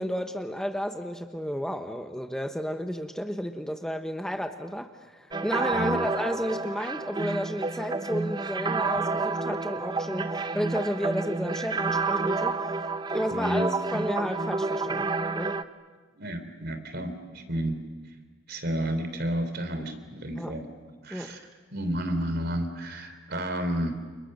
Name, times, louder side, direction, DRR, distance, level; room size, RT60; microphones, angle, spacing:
voice 1, 0.0-12.8 13.1-15.6 20.4-20.5 21.1-21.4, equal, 5° left, 6 dB, 1.0 m, -32 dB
sound 1, 5.3-15.6, right 3 dB, 20° right, 0.8 m, -29 dB
voice 2, 13.3-13.7 16.2-17.8 18.5-20.6 21.0-24.0, right 1 dB, 55° right, 8 dB, 3.3 m, -31 dB
30.0 x 29.0 x 6.7 m, 1.4 s
head